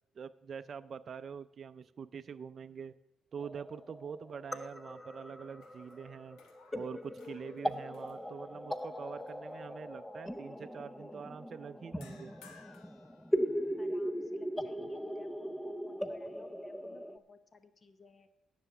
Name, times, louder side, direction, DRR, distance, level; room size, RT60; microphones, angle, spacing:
voice 1, 0.2-2.9 3.3-6.4 6.7-12.3, right 6 dB, 50° right, 11 dB, 0.4 m, -45 dB
sound 1, 3.4-17.2, equal, 10° left, 0.6 m, -39 dB
sound 2, 4.5-5.2 5.5-8.8 9.3-9.5 12.0-13.9, left 6 dB, 90° left, 1.3 m, -62 dB
voice 2, 13.8-18.3, left 4 dB, 35° left, 10 dB, 0.9 m, -58 dB
9.9 x 6.8 x 8.0 m, 0.85 s
cardioid pair, 90°, 0 cm